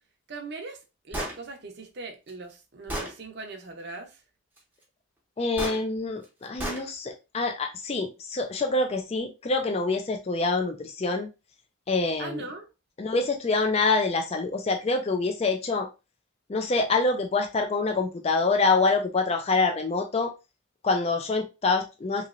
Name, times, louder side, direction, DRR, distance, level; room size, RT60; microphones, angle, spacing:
voice 1, 0.3-4.2 12.2-12.7, right 3 dB, 50° right, 0.6 m, -40 dB
Gunshot gunfire, 1.1-1.4 2.3-2.4 2.9-3.1 5.6-5.8 6.6-6.8, right 1 dB, 10° right, 0.6 m, -32 dB
voice 2, 5.4-11.3 11.9-12.4 13.0-15.9 16.5-20.3 20.8-22.3, left 3 dB, 30° left, 0.4 m, -26 dB
3.1 x 2.8 x 2.4 m
head